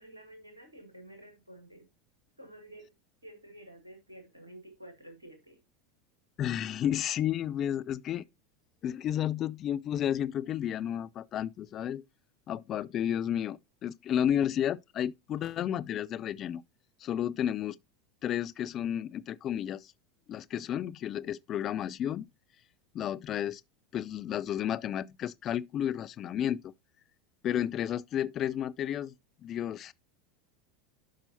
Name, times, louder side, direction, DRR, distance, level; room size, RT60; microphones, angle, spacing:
voice 1, 0.0-1.9 2.4-2.9 3.2-5.6, right 1 dB, 85° right, 1.8 m, -50 dB
voice 2, 6.4-8.2 8.8-12.1 12.5-16.6 17.0-17.8 18.2-19.9 20.3-22.3 22.9-23.6 23.9-26.7 27.4-29.1 29.4-29.9, left 10 dB, 35° left, 0.4 m, -32 dB
11.5 x 5.4 x 2.7 m
figure-of-eight pair, 80°, 0 cm